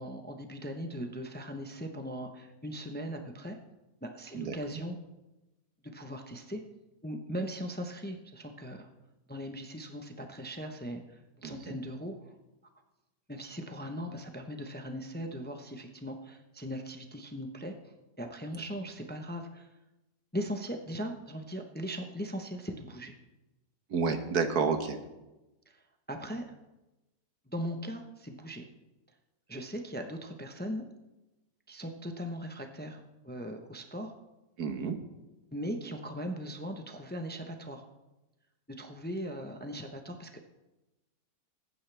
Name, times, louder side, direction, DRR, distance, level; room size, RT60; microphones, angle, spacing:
voice 1, 0.0-3.6 4.0-5.0 5.8-6.6 7.0-8.9 9.3-12.3 13.3-17.7 18.2-19.7 20.3-23.1 25.7-26.4 27.5-28.7 29.5-30.8 31.7-34.1 35.5-37.9 38.8-40.5, equal, 10° left, 5 dB, 0.7 m, -39 dB
voice 2, 11.4-11.8 23.9-25.0 34.6-35.0, right 5 dB, 80° right, 7 dB, 1.7 m, -30 dB
20.5 x 9.4 x 3.4 m, 1.0 s
omnidirectional pair, 1.6 m